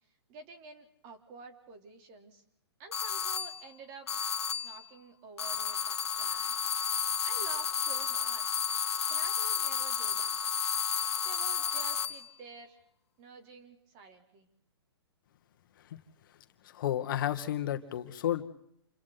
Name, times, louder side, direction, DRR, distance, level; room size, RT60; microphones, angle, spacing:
voice 1, 0.3-2.4 2.8-4.1 4.6-6.6 7.2-8.5 9.1-10.4 11.2-12.8 13.2-14.5, right 4 dB, 35° right, 5 dB, 3.5 m, -49 dB
sound 1, 2.9-3.6 4.1-4.8 5.4-12.2, left 7 dB, 75° left, 1.6 m, -32 dB
voice 2, 16.6-18.4, left 11 dB, 50° left, 8 dB, 1.7 m, -32 dB
28.0 x 26.0 x 4.1 m, 0.73 s
hypercardioid pair, 135°, 14 cm